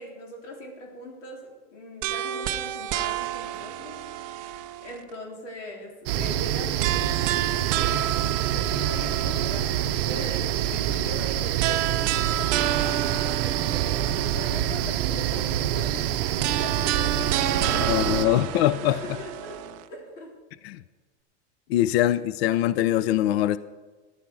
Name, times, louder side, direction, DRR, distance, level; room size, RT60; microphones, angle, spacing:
voice 1, 0.0-4.5 4.8-8.1 8.5-18.3 19.2-19.6 19.9-20.3, left 1 dB, 85° left, 3.8 m, -40 dB
sound 1, 2.0-5.1 6.8-9.8 11.6-14.8 16.4-19.8, right 12 dB, 25° right, 0.4 m, -30 dB
sound 2, 6.1-18.3, right 11 dB, 50° right, 0.7 m, -26 dB
voice 2, 17.8-19.2 20.6-20.8 21.7-23.6, left 13 dB, 60° left, 0.5 m, -23 dB
14.5 x 11.5 x 4.7 m
supercardioid pair, 155°, 35 cm